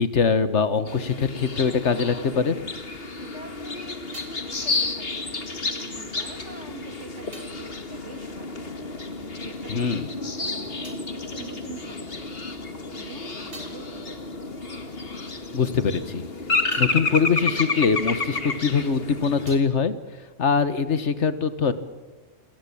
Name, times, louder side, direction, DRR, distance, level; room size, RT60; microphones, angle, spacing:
voice 1, 0.0-2.6 9.7-10.1 15.5-16.3 16.8-21.7, left 5 dB, 75° left, 13 dB, 1.8 m, -23 dB
sound 1, 0.9-19.6, left 3 dB, 55° left, 2.3 m, -31 dB
voice 2, 3.2-5.5 5.9-8.8 9.4-12.6 13.0-14.5, right 2 dB, 75° right, 6 dB, 3.3 m, -44 dB
sound 2, 10.8-12.3 12.7-18.7 19.0-21.0, right 1 dB, 50° right, 3.5 m, -53 dB
28.0 x 19.0 x 8.7 m, 1.2 s
omnidirectional pair, 1.2 m